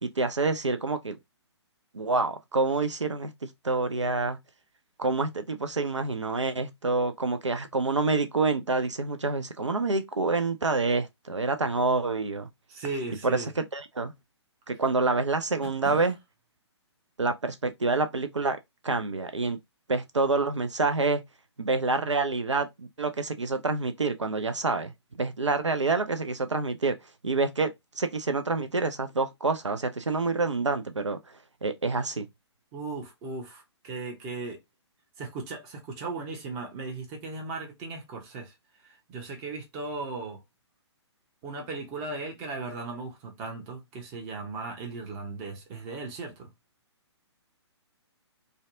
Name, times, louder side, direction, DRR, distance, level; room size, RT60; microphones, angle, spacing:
voice 1, 0.0-1.2 1.9-3.3 3.6-4.4 5.0-12.5 13.2-14.1 14.7-16.1 17.2-18.6 18.8-19.6 19.9-21.2 21.6-24.9 25.2-27.0 27.2-31.2 31.6-32.3, right 3 dB, 85° right, 0.4 m, -27 dB
voice 2, 12.7-13.5 15.6-16.0 32.7-34.6 35.2-38.5 38.8-40.4 41.4-46.5, right 3 dB, 20° right, 0.7 m, -37 dB
2.6 x 2.1 x 2.5 m
figure-of-eight pair, 125°, 15 cm